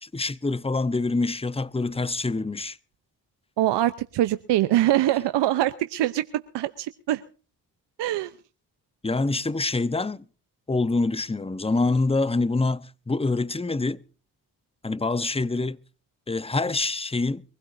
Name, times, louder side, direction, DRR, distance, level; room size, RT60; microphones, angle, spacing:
voice 1, 0.0-2.8 9.0-10.2 10.7-14.0 14.8-15.8 16.3-17.4, left 3 dB, 15° left, 1.0 m, -25 dB
voice 2, 3.6-7.2 8.0-8.3, right 14 dB, 75° right, 0.9 m, -23 dB
23.0 x 16.5 x 2.7 m
supercardioid pair, 45°, 42 cm